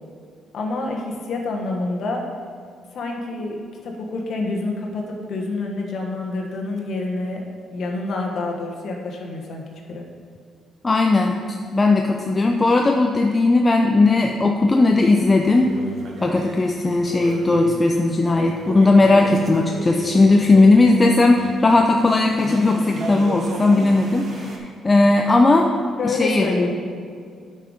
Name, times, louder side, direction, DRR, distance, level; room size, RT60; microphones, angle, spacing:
voice 1, 0.5-2.2 2.9-10.1 26.0-26.7, left 2 dB, 65° left, 0 dB, 1.3 m, -27 dB
voice 2, 10.8-11.4 11.7-15.7 16.2-25.7 26.0-26.5, left 2 dB, 25° left, 3 dB, 0.6 m, -17 dB
sound 1, 15.2-24.6, right 2 dB, 55° right, 1.2 m, -35 dB
8.5 x 5.7 x 5.1 m, 2.2 s
cardioid pair, 90°, 0 cm